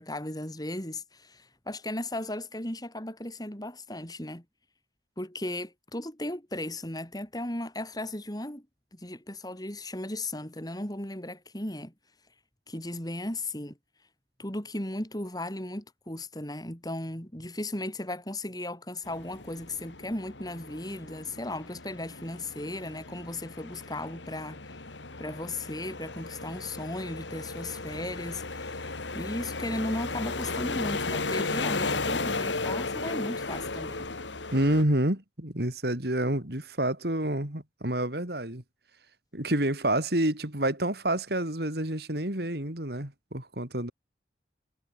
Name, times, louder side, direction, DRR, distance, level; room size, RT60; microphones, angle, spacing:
voice 1, 0.0-4.4 5.2-8.7 8.9-11.9 12.7-13.8 14.4-24.7 25.2-34.1, left 1 dB, 20° left, 4.4 m, -36 dB
sound 1, 19.1-34.8, left 3 dB, 85° left, 2.8 m, -35 dB
voice 2, 34.5-38.6 39.3-43.9, right 1 dB, 60° right, 3.8 m, -28 dB
head